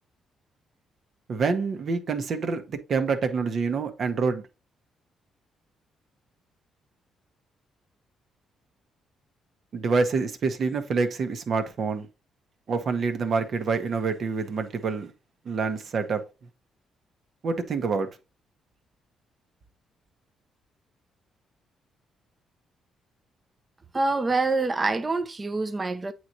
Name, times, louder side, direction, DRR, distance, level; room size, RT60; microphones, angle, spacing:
voice 1, 1.3-4.4 9.7-12.1 12.7-15.1 15.4-16.2 17.4-18.1, right 4 dB, 55° right, 1.2 m, -27 dB
voice 2, 23.9-26.1, right 3 dB, 25° right, 0.8 m, -26 dB
8.5 x 3.2 x 4.0 m
cardioid pair, 90°, 0 cm